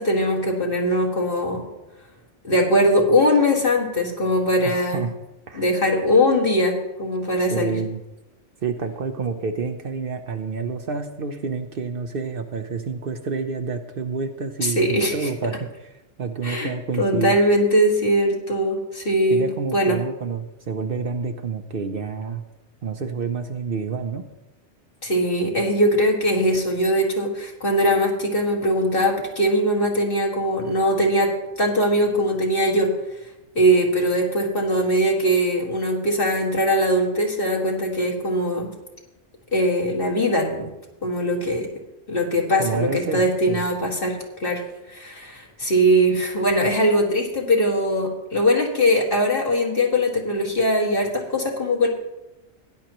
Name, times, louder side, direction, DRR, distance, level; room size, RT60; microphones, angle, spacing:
voice 1, 0.0-1.6 2.4-5.0 5.5-7.8 14.6-15.3 16.4-16.7 17.0-19.5 19.7-20.0 25.0-31.3 31.6-32.9 33.6-38.7 39.5-40.7 41.0-41.7 42.1-44.6 44.9-51.9, equal, 50° left, 0 dB, 2.2 m, -21 dB
voice 2, 4.6-5.1 5.5-5.6 7.5-8.0 8.6-15.9 16.2-17.4 19.3-22.4 22.8-24.3 42.6-43.2 43.5-43.6, right 5 dB, 55° right, 7 dB, 0.9 m, -28 dB
16.5 x 10.5 x 3.0 m, 0.96 s
omnidirectional pair, 1.2 m